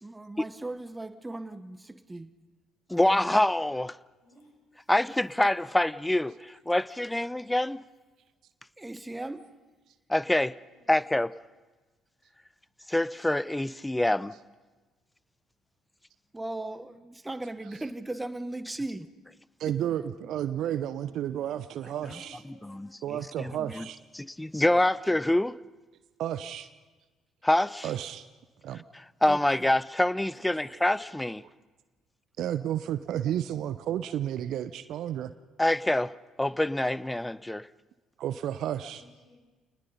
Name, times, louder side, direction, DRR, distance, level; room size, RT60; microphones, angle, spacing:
voice 1, 0.0-2.3 2.9-3.3 5.1-5.2 8.8-9.6 16.3-19.1 19.7-19.8 29.2-29.7, right 2 dB, 15° right, 1.1 m, -38 dB
voice 2, 2.9-4.0 4.9-7.8 10.1-10.6 10.9-11.3 12.9-14.3 22.7-22.9 23.4-23.8 24.2-25.6 27.4-27.9 29.2-31.4 35.6-36.1 36.4-37.7, left 1 dB, 10° left, 0.6 m, -26 dB
voice 3, 4.2-4.6 10.7-11.0 19.7-19.9 21.0-21.5 21.9-23.2 38.5-39.4, left 1 dB, 75° left, 6.7 m, -58 dB
voice 4, 19.6-22.4 23.0-24.0 26.2-26.7 27.8-28.3 28.6-28.8 32.4-35.3 38.2-39.0, right 11 dB, 60° right, 0.6 m, -32 dB
27.5 x 20.0 x 5.6 m
hypercardioid pair, 50°, 0 cm